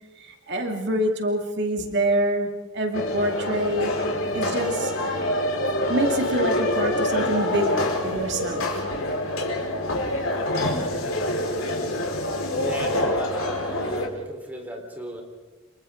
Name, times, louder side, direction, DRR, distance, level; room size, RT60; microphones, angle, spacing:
voice 1, 0.2-3.9 4.3-5.3 5.9-8.9, right 1 dB, 60° right, 3 dB, 2.4 m, -26 dB
sound 1, 2.9-14.1, left 1 dB, 80° left, 4.9 m, -26 dB
voice 2, 12.6-15.2, right 1 dB, 10° right, 1 dB, 4.1 m, -36 dB
30.0 x 28.0 x 3.9 m, 1.2 s
head